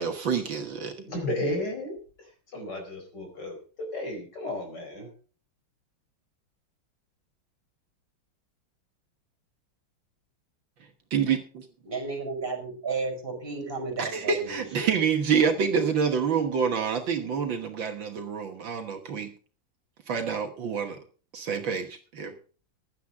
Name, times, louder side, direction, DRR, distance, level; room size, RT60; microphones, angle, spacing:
voice 1, 0.0-1.0 11.1-11.6 14.0-19.3 20.1-21.0 21.3-22.3, right 6 dB, 65° right, 5 dB, 2.1 m, -27 dB
voice 2, 1.0-1.9 2.5-5.1, left 1 dB, 50° left, 3 dB, 5.0 m, -33 dB
voice 3, 11.9-14.6, right 4 dB, 25° right, 3 dB, 6.0 m, -33 dB
16.0 x 11.5 x 3.6 m, 0.38 s
omnidirectional pair, 2.3 m